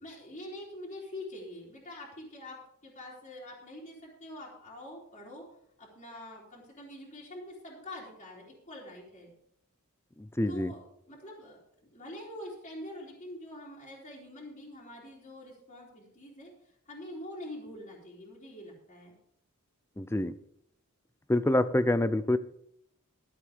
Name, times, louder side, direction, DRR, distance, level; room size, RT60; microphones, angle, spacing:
voice 1, 0.0-5.4 5.8-9.3 10.5-11.6 11.9-16.5 16.9-19.1, left 1 dB, 35° left, -5 dB, 3.4 m, -45 dB
voice 2, 10.4-10.7 20.0-20.3 21.3-22.4, left 1 dB, 10° left, 14 dB, 0.6 m, -26 dB
13.5 x 7.6 x 5.1 m, 0.70 s
head